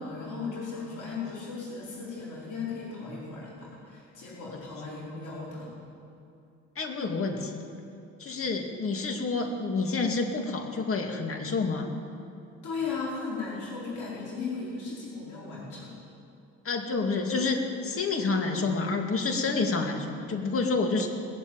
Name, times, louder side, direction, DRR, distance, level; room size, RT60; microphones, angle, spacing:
voice 1, 0.0-5.7 12.6-15.9, left 4 dB, 80° left, -6 dB, 4.9 m, -36 dB
voice 2, 6.8-7.6 8.2-11.9 16.6-21.1, left 3 dB, 45° left, 3 dB, 2.3 m, -28 dB
20.5 x 7.6 x 8.9 m, 2.6 s
cardioid pair, 90°, 30 cm